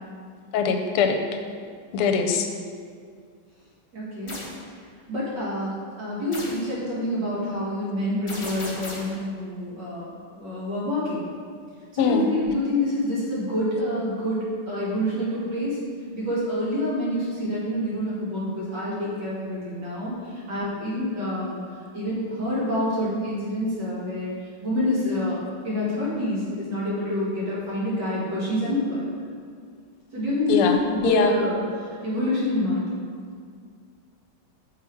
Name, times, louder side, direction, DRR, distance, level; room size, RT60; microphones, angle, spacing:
voice 1, 0.5-1.4 1.9-2.5 12.0-12.3 30.5-31.4, left 5 dB, 85° left, 4 dB, 1.5 m, -22 dB
voice 2, 3.9-4.4 5.1-10.1 10.4-11.3 11.9-15.8 16.1-21.6 21.9-24.3 24.6-25.4 25.6-29.1 30.1-32.9, left 1 dB, 55° right, -8 dB, 2.3 m, -27 dB
sound 1, 4.3-4.6 6.3-6.7 8.3-9.2, left 1 dB, 40° left, 0.4 m, -36 dB
5.8 x 4.9 x 4.5 m, 2.1 s
omnidirectional pair, 2.4 m